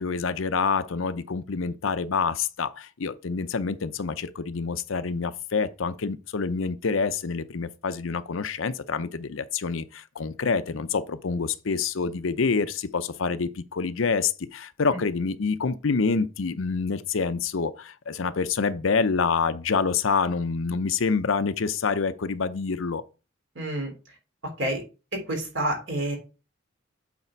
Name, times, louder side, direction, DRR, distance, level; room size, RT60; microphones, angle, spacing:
voice 1, 0.0-23.0, left 5 dB, 75° left, 0.6 m, -27 dB
voice 2, 23.5-23.9 24.6-24.8 25.1-26.2, right 1 dB, 60° right, 3.4 m, -28 dB
8.3 x 4.3 x 4.4 m
head